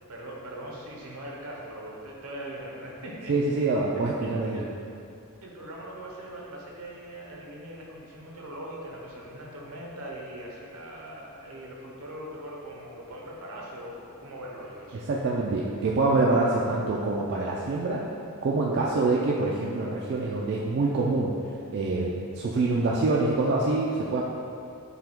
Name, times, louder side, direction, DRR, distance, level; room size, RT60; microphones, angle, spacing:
voice 1, 0.1-3.3 3.6-3.7 4.2-4.7 5.4-15.0, right 1 dB, 75° right, -2 dB, 0.7 m, -41 dB
voice 2, 3.3-4.6 14.9-18.0 18.4-21.3 21.7-24.2, right 3 dB, 50° right, -4 dB, 0.3 m, -25 dB
5.7 x 2.2 x 3.6 m, 2.5 s
head